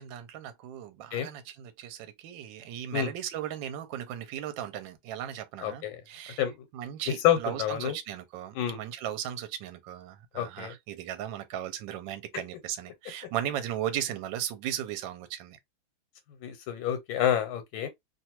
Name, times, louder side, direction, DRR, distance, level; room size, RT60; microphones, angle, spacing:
voice 1, 0.0-6.4 6.7-15.6, right 11 dB, 75° right, 1.2 m, -36 dB
voice 2, 5.6-6.0 6.4-6.5 7.2-7.9 8.5-8.8 10.3-10.7 16.4-17.9, left 10 dB, 85° left, 1.4 m, -28 dB
3.1 x 2.3 x 2.9 m
omnidirectional pair, 2.2 m